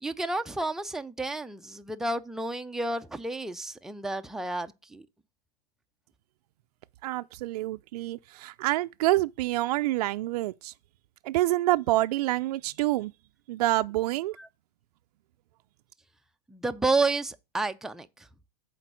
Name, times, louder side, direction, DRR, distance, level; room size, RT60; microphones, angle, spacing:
voice 1, 0.0-5.1 14.4-14.5 16.5-18.3, right 2 dB, ahead, 0.4 m, -31 dB
voice 2, 7.0-10.7 11.2-13.1 13.5-14.4, right 17 dB, 65° right, 0.4 m, -27 dB
7.6 x 4.6 x 6.1 m
hypercardioid pair, 125°, 21 cm